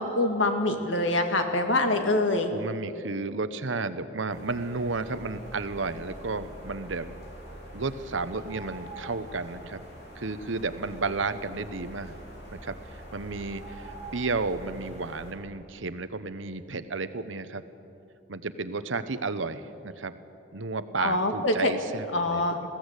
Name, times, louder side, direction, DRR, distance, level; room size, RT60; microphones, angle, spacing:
voice 1, 0.0-2.5 21.0-21.7 22.1-22.6, left 2 dB, 85° left, 5 dB, 2.0 m, -25 dB
voice 2, 2.5-7.1 7.7-9.9 10.1-12.2 12.5-17.6 18.3-20.1 20.5-22.7, right 3 dB, 85° right, 12 dB, 1.0 m, -32 dB
sound 1, 4.3-15.3, right 1 dB, 60° left, 4.4 m, -44 dB
21.0 x 15.5 x 8.3 m, 2.6 s
head